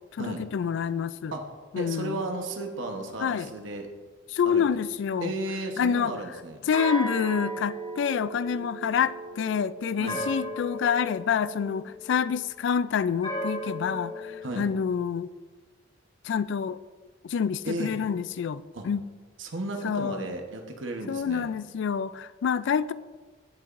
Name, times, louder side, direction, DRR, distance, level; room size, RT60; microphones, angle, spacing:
voice 1, 0.1-1.3 1.7-2.2 3.2-3.5 4.3-5.3 5.8-6.1 6.7-15.3 16.2-16.8 17.2-19.1 19.8-20.3 21.1-22.9, left 7 dB, 65° left, 0.3 m, -27 dB
voice 2, 1.8-3.9 4.4-4.6 5.2-6.6 10.0-10.2 14.4-14.7 17.6-17.9 18.7-18.9 19.4-21.5, right 2 dB, 90° right, 1.0 m, -34 dB
sound 1, 6.7-12.4 13.2-14.4, right 1 dB, 30° left, 1.7 m, -36 dB
16.0 x 6.8 x 2.5 m
head